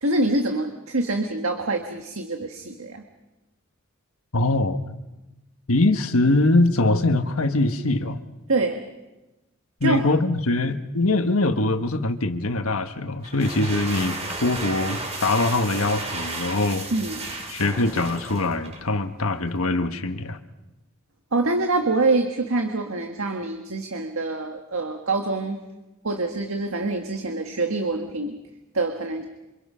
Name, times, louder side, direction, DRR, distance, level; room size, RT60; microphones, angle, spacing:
voice 1, 0.0-3.0 8.5-8.8 9.8-10.0 16.9-17.2 21.3-25.6 26.0-28.4 28.7-29.3, right 2 dB, 75° right, 4 dB, 1.7 m, -25 dB
voice 2, 4.3-4.8 5.7-8.2 9.8-16.9 17.5-20.4, left 2 dB, 85° left, 7 dB, 1.5 m, -22 dB
sound 1, 13.2-18.9, right 2 dB, 30° right, 3.7 m, -33 dB
27.5 x 26.0 x 5.7 m, 1.1 s
head